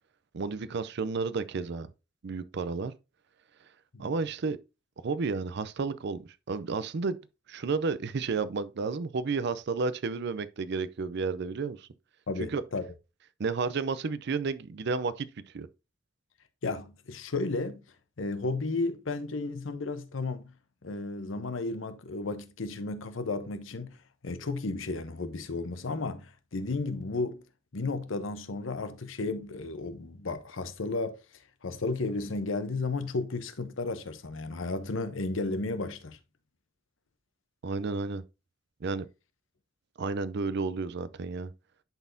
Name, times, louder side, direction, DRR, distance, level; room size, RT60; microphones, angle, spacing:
voice 1, 0.3-1.9 2.2-2.9 4.0-4.6 5.0-6.2 6.5-7.2 7.5-11.9 12.4-12.6 13.4-15.3 15.5-15.7 37.6-38.2 38.8-39.1 40.0-41.5, right 4 dB, 60° right, 0.5 m, -31 dB
voice 2, 12.3-12.8 16.6-17.8 18.2-20.5 20.8-24.0 24.2-27.4 27.7-31.2 31.6-36.2, left 3 dB, 80° left, 0.8 m, -33 dB
10.5 x 4.1 x 2.6 m
head